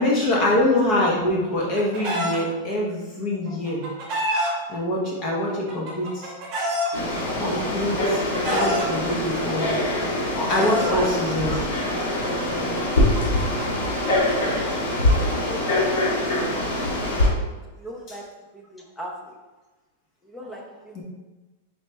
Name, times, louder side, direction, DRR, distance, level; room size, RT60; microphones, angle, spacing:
voice 1, 0.0-3.8 4.7-6.3 7.4-8.2 8.5-9.7 10.3-11.6 21.0-21.1, left 1 dB, 30° left, -3 dB, 0.9 m, -24 dB
Chicken rooster, 1.2-2.4 3.5-4.5 5.5-6.9 7.8-8.8 9.8-10.9 12.0-15.3, equal, 25° right, 1.2 m, -28 dB
Frog, 6.9-17.3, left 1 dB, 75° left, 1.3 m, -24 dB
voice 2, 10.7-11.3 17.2-18.3 18.5-19.4 20.2-21.0, equal, 5° left, 0 dB, 0.5 m, -38 dB
4.3 x 3.1 x 3.3 m, 1.2 s
supercardioid pair, 175°, 0 cm